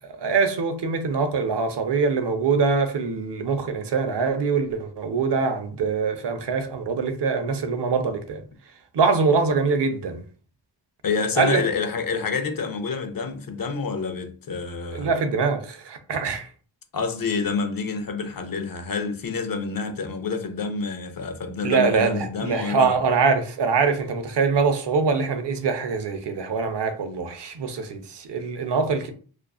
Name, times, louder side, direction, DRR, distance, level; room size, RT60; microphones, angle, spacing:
voice 1, 0.0-8.4 8.9-10.2 11.4-11.6 14.9-16.5 21.6-29.1, right 5 dB, 65° right, 0.6 m, -23 dB
voice 2, 11.0-15.1 16.9-23.0, left 5 dB, 50° left, 0.5 m, -28 dB
2.5 x 2.2 x 2.3 m
wide cardioid pair, 50°, 45 cm